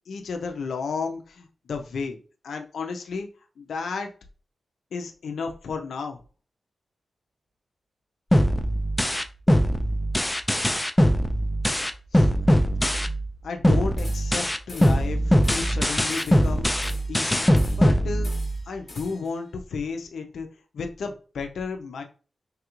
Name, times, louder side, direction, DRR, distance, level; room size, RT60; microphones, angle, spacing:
voice 1, 0.1-2.2 2.4-3.3 3.6-4.1 4.9-6.2 12.1-12.3 13.4-16.7 17.1-17.5 17.7-18.3 18.7-20.5 20.7-22.0, left 4 dB, 85° left, 4 dB, 0.4 m, -32 dB
sound 1, 8.3-13.3 13.6-18.7, equal, 10° left, 0.3 m, -21 dB
sound 2, 14.0-14.4 14.7-15.1 15.4-15.8 16.1-17.2 17.6-18.0 18.2-19.3, left 2 dB, 40° left, 1.0 m, -45 dB
3.2 x 2.4 x 2.9 m, 0.36 s
cardioid pair, 80°, 0 cm